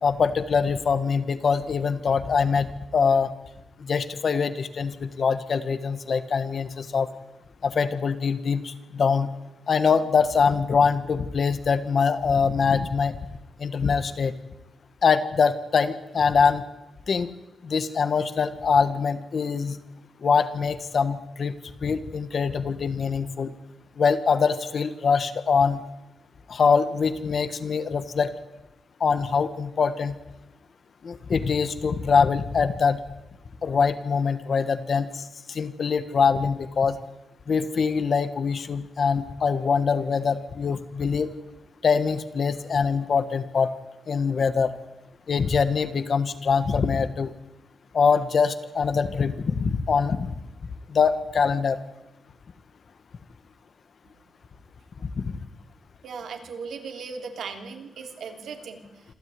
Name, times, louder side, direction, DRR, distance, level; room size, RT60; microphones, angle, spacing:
voice 1, 0.0-2.7 2.9-3.3 3.8-7.1 7.6-9.3 9.7-13.1 13.6-14.3 15.0-16.6 17.1-17.3 17.6-19.8 20.2-21.5 21.8-23.5 24.0-25.8 26.5-28.3 29.0-30.1 31.0-33.0 33.6-35.1 35.5-37.0 37.5-41.3 41.8-43.7 44.1-44.7 45.3-47.3 47.9-50.3 50.9-51.8, left 5 dB, 50° left, 12 dB, 1.5 m, -23 dB
voice 2, 56.0-59.0, right 5 dB, 80° right, 5 dB, 3.1 m, -37 dB
26.5 x 13.5 x 9.6 m, 0.98 s
wide cardioid pair, 130°, 0 cm